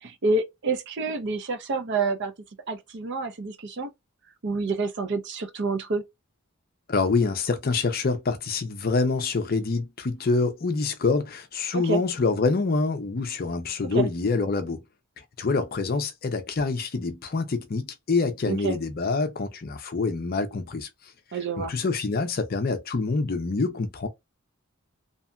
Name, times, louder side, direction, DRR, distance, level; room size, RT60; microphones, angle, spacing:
voice 1, 0.0-2.3 2.7-3.9 4.4-6.0 11.7-12.0 13.9-14.1 18.5-18.8 21.3-21.7, right 3 dB, 50° right, 0.5 m, -28 dB
voice 2, 6.9-14.8 15.4-20.9 21.6-24.1, left 4 dB, 40° left, 0.5 m, -26 dB
2.8 x 2.6 x 2.2 m
head